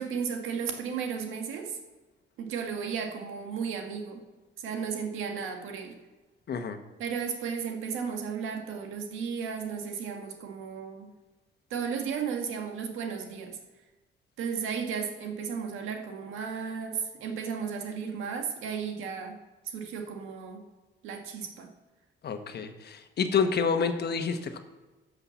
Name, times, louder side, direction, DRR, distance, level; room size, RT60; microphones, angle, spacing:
voice 1, 0.0-1.8 2.4-4.2 4.6-6.0 7.0-11.1 11.7-13.6 14.4-19.3 19.6-20.6 21.0-21.7, right 6 dB, 90° right, 4 dB, 1.6 m, -34 dB
voice 2, 6.5-6.8 22.2-24.6, left 6 dB, 55° left, 7 dB, 1.2 m, -28 dB
11.5 x 5.8 x 7.2 m, 1.2 s
cardioid pair, 90°, 20 cm